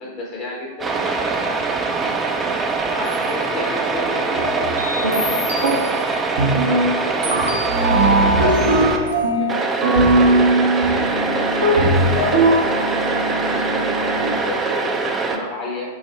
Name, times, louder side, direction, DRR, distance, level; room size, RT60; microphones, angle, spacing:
voice 1, 0.0-2.2 2.9-10.5 10.9-16.0, left 1 dB, 40° left, -3 dB, 0.9 m, -32 dB
sound 1, 0.8-9.0 9.5-15.4, right 4 dB, 20° right, 0.3 m, -23 dB
sound 2, 3.1-3.3 3.8-3.9 4.4-6.0 6.4-6.9 7.2-14.4, right 1 dB, 70° right, 0.6 m, -19 dB
4.7 x 2.0 x 3.3 m, 1.3 s
figure-of-eight pair, 90°, 0 cm